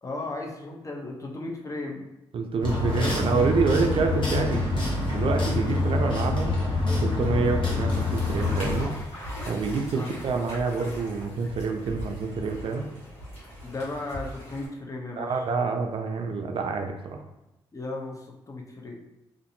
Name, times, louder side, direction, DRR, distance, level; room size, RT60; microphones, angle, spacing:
voice 1, 0.0-2.1 9.9-10.2 13.6-15.3 17.7-19.0, left 2 dB, 30° left, 0 dB, 0.6 m, -35 dB
voice 2, 2.3-6.6 7.0-8.9 9.5-12.9 15.2-17.2, right 4 dB, 55° right, 4 dB, 0.4 m, -27 dB
sound 1, 2.6-8.9, left 2 dB, 45° left, 1.1 m, -26 dB
sound 2, 7.9-14.7, equal, 70° left, 1.3 m, -40 dB
2.5 x 2.5 x 2.6 m, 0.95 s
supercardioid pair, 55°, 11 cm